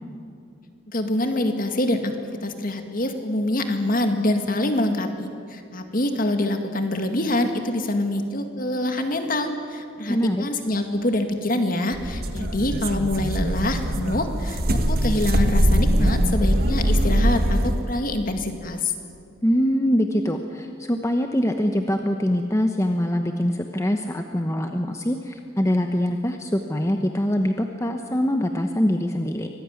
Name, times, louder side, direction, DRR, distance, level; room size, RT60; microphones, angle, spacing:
voice 1, 0.9-2.1 2.4-18.9, left 1 dB, 40° left, 6 dB, 2.1 m, -25 dB
voice 2, 10.1-10.4 19.4-29.5, equal, 15° left, 5 dB, 0.9 m, -23 dB
sound 1, 11.9-17.9, right 1 dB, 45° right, 1.5 m, -22 dB
24.5 x 18.5 x 9.7 m, 2.5 s
head